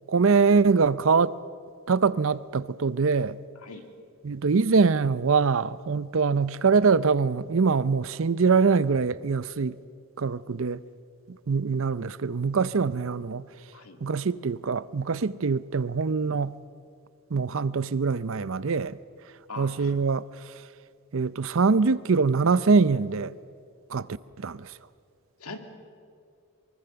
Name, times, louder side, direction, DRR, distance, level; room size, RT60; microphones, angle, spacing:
voice 1, 0.1-1.3 1.9-3.4 4.2-9.8 10.2-10.8 11.5-13.4 14.0-16.6 17.3-19.0 19.6-20.2 21.1-23.3 23.9-24.1 24.4-24.7, right 5 dB, 65° right, 0.6 m, -23 dB
voice 2, 19.5-19.9 25.4-25.6, left 3 dB, 85° left, 2.2 m, -41 dB
23.5 x 23.0 x 6.9 m
head